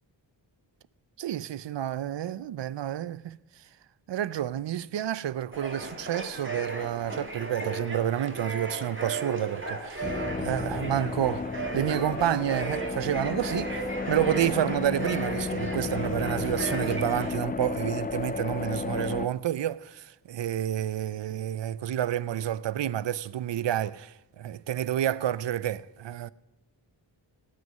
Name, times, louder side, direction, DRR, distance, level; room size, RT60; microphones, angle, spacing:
voice 1, 1.2-3.7 4.1-11.5 11.7-26.3, right 11 dB, 70° right, 0.5 m, -29 dB
sound 1, 5.5-17.4, right 3 dB, 25° right, 1.9 m, -36 dB
sound 2, 10.0-19.3, left 4 dB, 20° left, 0.4 m, -33 dB
17.5 x 6.4 x 7.3 m
wide cardioid pair, 65°, 45 cm